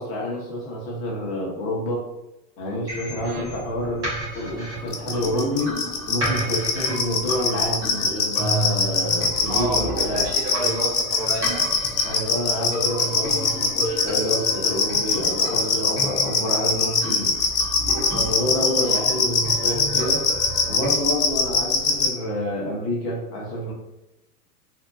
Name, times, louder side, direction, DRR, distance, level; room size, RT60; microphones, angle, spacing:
voice 1, 0.0-2.0 2.6-4.1 4.3-10.3 12.0-17.3 18.1-20.2 20.7-23.7, left 1 dB, 30° left, -3 dB, 0.8 m, -28 dB
sound 1, 2.9-20.9, right 1 dB, 10° right, 0.3 m, -33 dB
sound 2, 4.9-22.1, left 5 dB, 70° left, 0.7 m, -21 dB
voice 2, 9.5-11.6 18.8-19.0, right 2 dB, 30° right, 0 dB, 0.7 m, -30 dB
2.7 x 2.1 x 2.4 m, 0.93 s
hypercardioid pair, 120°, 47 cm